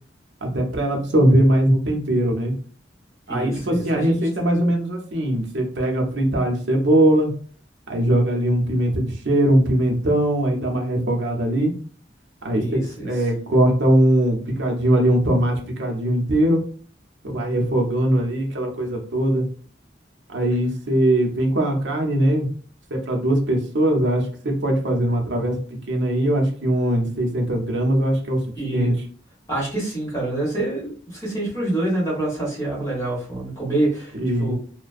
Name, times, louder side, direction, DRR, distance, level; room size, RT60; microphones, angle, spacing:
voice 1, 0.4-2.5 3.3-7.3 7.9-11.7 12.4-12.8 13.0-16.6 17.2-19.4 20.3-22.5 22.9-25.6 25.9-28.4 28.7-28.9 34.1-34.5, right 1 dB, 80° right, 1 dB, 0.7 m, -20 dB
voice 2, 3.3-4.2 12.6-13.1 28.6-28.9 29.5-34.5, right 1 dB, 15° left, -6 dB, 1.2 m, -26 dB
2.5 x 2.2 x 2.4 m, 0.43 s
head